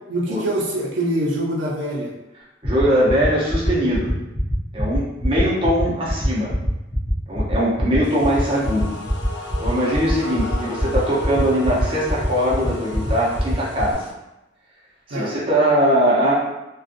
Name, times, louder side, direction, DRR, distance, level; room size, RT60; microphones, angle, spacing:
voice 1, 0.1-2.1 10.2-10.9 15.1-15.4, right 1 dB, 80° right, -2 dB, 0.6 m, -25 dB
sound 1, 2.6-13.9, equal, 20° left, 0.6 m, -26 dB
voice 2, 2.6-4.1 4.7-6.5 7.3-8.9 9.6-14.0 15.1-16.3, equal, 30° right, -7 dB, 0.6 m, -21 dB
sound 2, 8.0-14.1, left 2 dB, 65° left, 0.4 m, -35 dB
2.5 x 2.3 x 2.5 m, 0.96 s
head